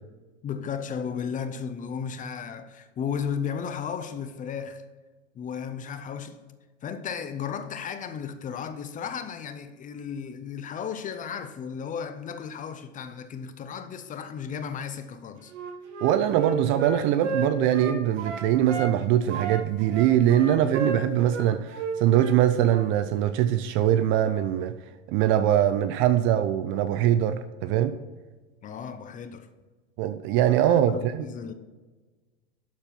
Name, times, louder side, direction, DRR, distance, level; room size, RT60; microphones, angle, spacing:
voice 1, 0.4-4.8 5.3-6.4 6.8-15.5 28.6-29.5 30.7-31.5, left 7 dB, 20° left, 0.6 m, -34 dB
Wind instrument woodwind instrument, 15.5-18.9 19.3-22.4 22.7-22.9, right 4 dB, 70° right, 1.8 m, -33 dB
voice 2, 16.0-24.7 25.1-27.9 30.0-31.3, right 11 dB, 35° right, 0.4 m, -22 dB
12.0 x 4.4 x 5.8 m
supercardioid pair, 130°, 38 cm